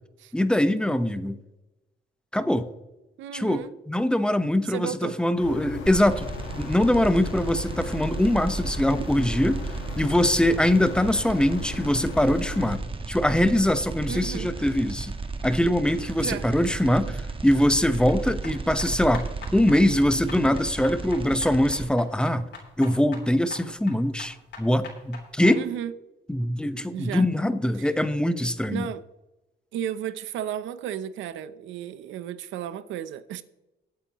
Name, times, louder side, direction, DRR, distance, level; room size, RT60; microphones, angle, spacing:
voice 1, 0.3-1.4 2.3-2.7 3.3-6.3 6.5-9.6 10.0-12.8 13.1-15.2 15.4-17.2 17.4-22.4 22.8-25.6 26.3-28.9, left 1 dB, 5° left, 1.1 m, -23 dB
voice 2, 3.2-3.7 4.6-5.2 9.0-9.1 14.1-14.5 16.2-16.5 17.1-17.2 25.6-25.9 26.9-27.3 27.8-27.9 28.7-29.0 29.7-33.4, right 10 dB, 90° right, 0.7 m, -34 dB
sound 1, 5.4-12.8, left 6 dB, 85° left, 1.8 m, -38 dB
sound 2, 5.9-21.9, right 3 dB, 30° right, 1.3 m, -34 dB
sound 3, 18.1-25.6, left 5 dB, 65° left, 3.5 m, -44 dB
21.5 x 8.5 x 3.0 m
cardioid pair, 80°, 19 cm